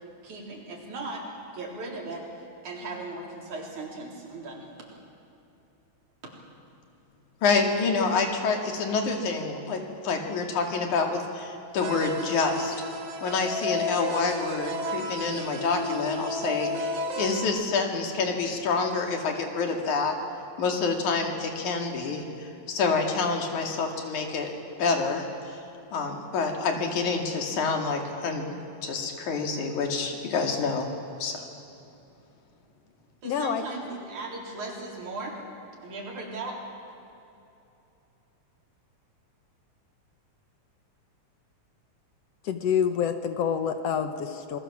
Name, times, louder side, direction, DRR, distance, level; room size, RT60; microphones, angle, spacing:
voice 1, 0.2-1.2 1.5-2.2 2.6-4.6 33.2-35.4 35.8-36.6, right 3 dB, 80° right, -1 dB, 5.2 m, -37 dB
voice 2, 7.4-12.8 13.2-16.9 17.2-20.2 20.6-24.5 24.8-25.6 25.9-28.5 28.8-30.9 31.2-31.4, left 4 dB, 85° left, 3 dB, 3.7 m, -27 dB
sound 1, 11.8-17.5, left 1 dB, 60° right, 2.5 m, -32 dB
voice 3, 33.3-33.6 42.5-44.6, left 8 dB, 65° left, 8 dB, 1.9 m, -27 dB
27.0 x 21.5 x 7.3 m, 2.8 s
omnidirectional pair, 3.4 m